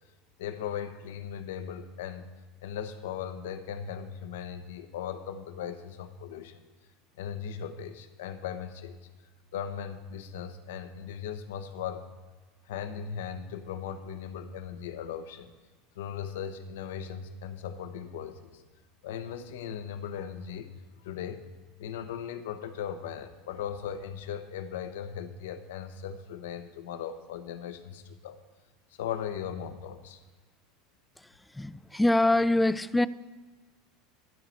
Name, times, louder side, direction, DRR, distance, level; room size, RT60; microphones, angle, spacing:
voice 1, 0.4-2.3 2.6-6.6 7.2-9.0 9.5-12.1 12.7-15.5 16.0-18.6 19.0-20.7 21.0-21.4 21.8-28.4 29.0-30.2, left 8 dB, 65° left, 0.8 m, -38 dB
voice 2, 31.5-33.1, left 1 dB, 5° left, 0.3 m, -24 dB
12.5 x 4.8 x 7.4 m
figure-of-eight pair, 75°, 0 cm